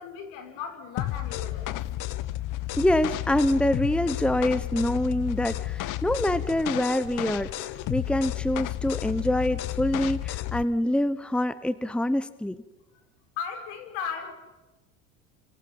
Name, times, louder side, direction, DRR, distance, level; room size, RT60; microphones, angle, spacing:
voice 1, 0.0-1.8 12.9-13.0 13.4-14.3, left 6 dB, 70° left, 5 dB, 5.8 m, -36 dB
sound 1, 1.0-10.7, left 15 dB, 50° left, 1.2 m, -32 dB
voice 2, 2.8-7.5 7.9-12.6, left 1 dB, 5° left, 15 dB, 1.1 m, -25 dB
29.5 x 26.5 x 5.5 m, 1.2 s
hypercardioid pair, 75°, 40 cm